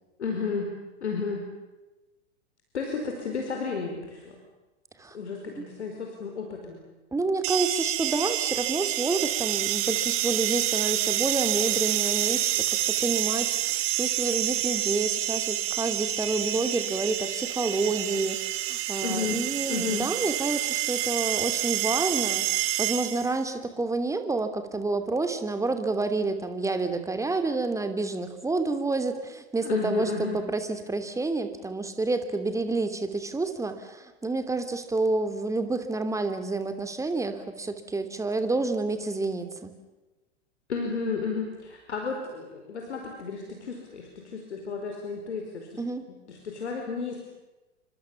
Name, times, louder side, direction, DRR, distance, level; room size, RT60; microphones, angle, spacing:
voice 1, 0.2-0.7 1.0-1.5 2.7-4.4 5.1-6.8 19.0-19.4 19.7-20.1 29.6-30.4 40.7-45.8 46.3-47.2, left 5 dB, 75° left, 2 dB, 5.0 m, -32 dB
voice 2, 7.1-18.4 18.7-22.5 22.8-39.7 45.8-46.1, right 3 dB, 10° right, 8 dB, 3.0 m, -29 dB
sound 1, 7.4-23.4, right 14 dB, 40° right, 2.5 m, -28 dB
29.5 x 25.5 x 7.3 m, 1.1 s
figure-of-eight pair, 100°, 34 cm